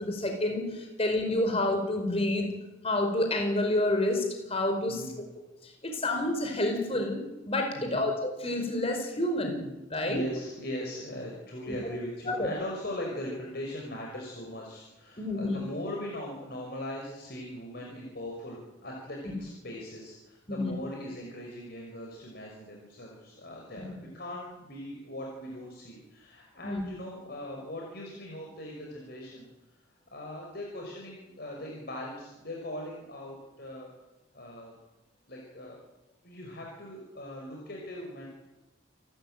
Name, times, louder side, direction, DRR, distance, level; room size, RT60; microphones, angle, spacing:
voice 1, 0.0-2.5 2.8-5.0 5.6-9.6 9.9-10.2 11.7-11.8 12.2-12.5 15.2-15.6 20.5-20.7 23.8-23.9 26.6-26.8, left 1 dB, 30° left, 4 dB, 5.0 m, -29 dB
voice 2, 4.9-5.2 7.7-8.1 10.0-29.5 30.1-33.9 34.3-34.7 35.3-35.8 36.2-38.2, left 1 dB, 55° left, -1 dB, 5.8 m, -40 dB
28.5 x 13.5 x 9.1 m, 1.0 s
head